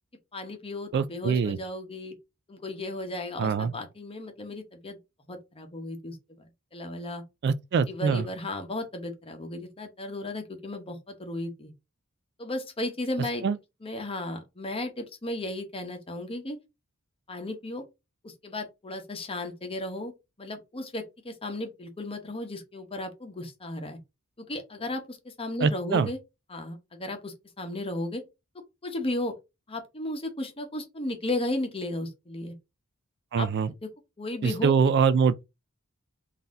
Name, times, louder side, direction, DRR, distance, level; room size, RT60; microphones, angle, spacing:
voice 1, 0.3-2.1 2.5-5.0 5.3-6.4 6.7-7.2 7.9-11.7 12.4-13.4 13.8-16.6 17.3-17.8 18.2-20.1 20.4-24.0 24.4-26.2 26.5-28.2 28.8-29.3 29.7-32.5 33.3-33.5 33.8-33.9 34.2-34.7, left 1 dB, 25° left, 1.0 m, -35 dB
voice 2, 0.9-1.6 3.4-3.7 7.4-8.2 13.4-13.6 25.6-26.1 33.3-33.7 34.4-35.4, right 6 dB, 50° right, 0.3 m, -24 dB
3.9 x 2.7 x 3.7 m
head